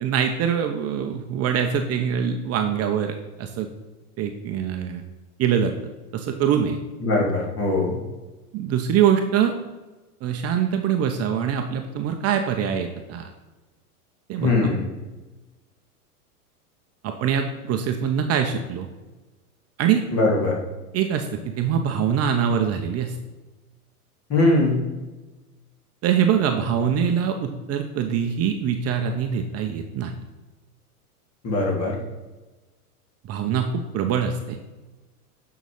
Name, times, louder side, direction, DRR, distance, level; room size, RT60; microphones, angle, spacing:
voice 1, 0.0-3.7 4.2-5.0 5.4-5.7 6.1-6.8 8.5-9.5 10.2-13.3 14.3-14.7 17.0-18.9 19.8-20.0 20.9-23.2 26.0-30.1 33.2-34.6, right 8 dB, 35° right, 5 dB, 0.9 m, -23 dB
voice 2, 7.0-8.0 14.4-14.8 20.1-20.6 24.3-24.8 31.4-32.0, left 2 dB, 30° left, -1 dB, 3.5 m, -21 dB
9.0 x 6.0 x 5.6 m, 1.2 s
hypercardioid pair, 110°, 45 cm